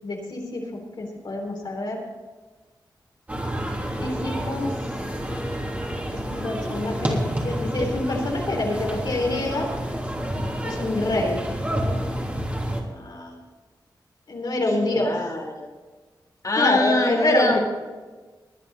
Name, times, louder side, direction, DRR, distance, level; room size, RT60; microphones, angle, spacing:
voice 1, 0.0-0.6 1.0-2.0 4.0-4.7 6.3-9.7 10.6-11.4 13.0-13.3 14.3-15.1 16.6-17.6, left 2 dB, 65° left, -1 dB, 3.9 m, -26 dB
sound 1, 3.3-12.8, equal, 20° right, 3.1 m, -29 dB
voice 2, 14.8-15.7 16.4-17.6, left 2 dB, 45° left, -1 dB, 3.4 m, -24 dB
21.0 x 9.5 x 4.2 m, 1.3 s
cardioid pair, 60°, 8 cm